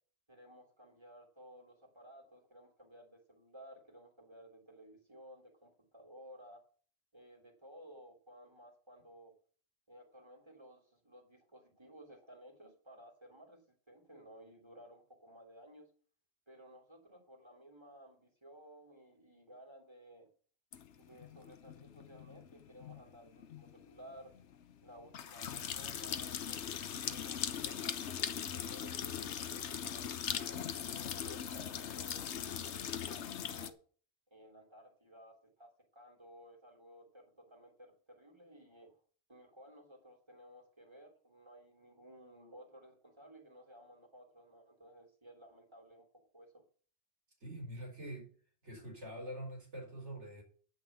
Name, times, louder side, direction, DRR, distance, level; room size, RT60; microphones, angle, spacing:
voice 1, 0.3-6.6 7.1-9.3 9.9-13.6 13.9-15.9 16.5-20.3 20.9-24.3 24.8-28.0 28.5-30.7 31.0-33.8 34.3-38.9 39.3-46.1 46.3-46.6, equal, 25° right, 2 dB, 3.1 m, -57 dB
sound 1, 20.7-33.7, left 8 dB, 80° left, 1.1 m, -40 dB
voice 2, 47.4-48.3 48.6-50.4, right 1 dB, 85° right, 1 dB, 4.3 m, -45 dB
10.5 x 5.9 x 7.1 m, 0.44 s
omnidirectional pair, 1.2 m